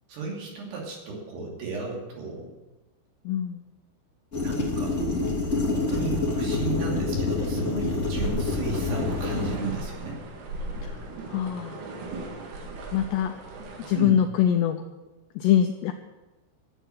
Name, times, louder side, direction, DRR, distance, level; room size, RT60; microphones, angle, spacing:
voice 1, 0.1-2.5 4.4-5.0 5.7-10.2 14.0-14.1, right 4 dB, 60° right, -2 dB, 4.6 m, -34 dB
voice 2, 3.3-3.6 10.8-11.0 11.3-11.8 12.9-13.3 13.8-14.8 15.4-15.9, left 10 dB, 85° left, 6 dB, 2.5 m, -23 dB
sound 1, 4.3-9.6, left 3 dB, 25° left, 1.8 m, -27 dB
sound 2, 8.2-14.0, right 2 dB, 80° right, 4.6 m, -37 dB
12.5 x 7.9 x 9.2 m, 1.1 s
omnidirectional pair, 5.7 m